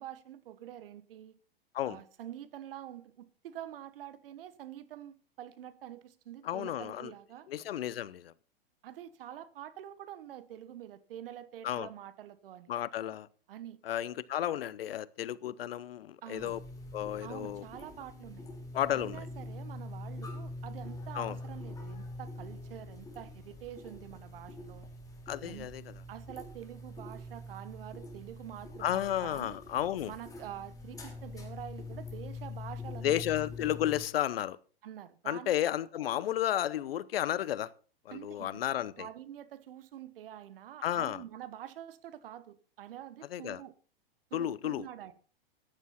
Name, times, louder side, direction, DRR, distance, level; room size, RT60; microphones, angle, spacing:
voice 1, 0.0-1.4 1.9-7.5 8.8-12.7 13.5-13.8 16.2-16.6 17.2-18.5 18.9-24.9 25.4-25.7 26.1-29.6 30.1-33.2 34.8-35.7 38.1-43.7 44.3-45.1, right 11 dB, 70° right, 1.4 m, -46 dB
voice 2, 6.4-7.1 7.5-8.3 11.6-11.9 12.7-13.3 13.8-16.6 16.9-17.6 18.7-19.2 21.1-21.4 25.3-25.8 28.8-30.1 33.0-34.6 35.3-37.7 38.1-39.1 40.8-41.2 43.3-43.6 44.3-44.9, left 11 dB, 75° left, 0.9 m, -32 dB
sound 1, 16.4-34.0, left 2 dB, 10° left, 3.7 m, -44 dB
14.5 x 9.9 x 4.2 m
hypercardioid pair, 120°, 29 cm